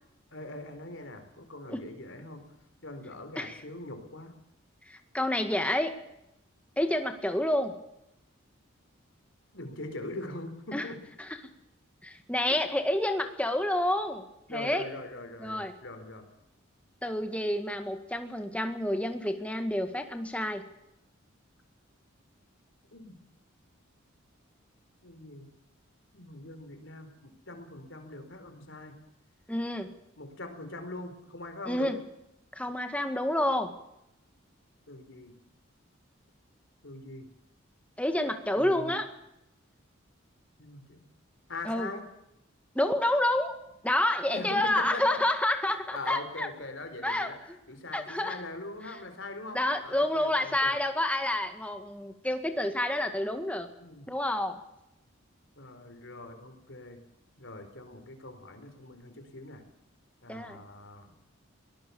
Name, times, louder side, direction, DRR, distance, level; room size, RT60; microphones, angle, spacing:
voice 1, 0.3-2.5 2.8-4.4 9.5-11.0 12.5-12.7 14.5-16.3 22.9-23.2 25.0-25.5 26.1-28.9 30.2-32.0 34.9-35.3 36.8-37.3 38.6-38.9 40.6-41.1 41.5-42.1 44.3-45.2 45.7-50.8 53.8-54.1 55.6-57.0 57.4-59.6 60.2-61.1, left 2 dB, 65° left, 7 dB, 4.3 m, -42 dB
voice 2, 4.9-5.9 6.8-7.7 10.7-10.9 12.0-14.9 15.4-15.7 17.0-20.7 29.5-29.9 31.7-32.0 32.5-33.7 38.0-39.1 41.7-41.9 42.8-43.5 43.8-46.5 47.0-47.3 47.9-48.4 49.5-53.7 54.1-54.6 60.3-60.6, left 1 dB, 5° left, 6 dB, 2.0 m, -29 dB
23.0 x 19.0 x 7.1 m, 0.84 s
head